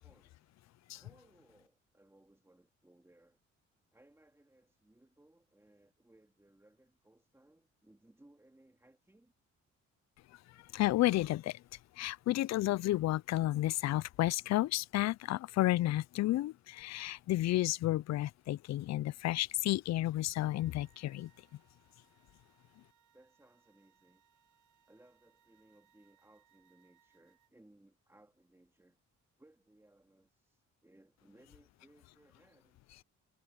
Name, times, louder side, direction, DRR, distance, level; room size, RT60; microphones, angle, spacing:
voice 1, 0.0-0.4 0.9-3.4 3.9-9.3 23.1-24.2 24.9-29.0 29.4-32.8, right 1 dB, 10° right, 2.9 m, -65 dB
voice 2, 10.7-11.6 12.0-21.3, left 15 dB, 60° left, 0.5 m, -31 dB
sound 1, 20.3-27.5, right 9 dB, 85° right, 5.4 m, -72 dB
cardioid pair, 90°, 30 cm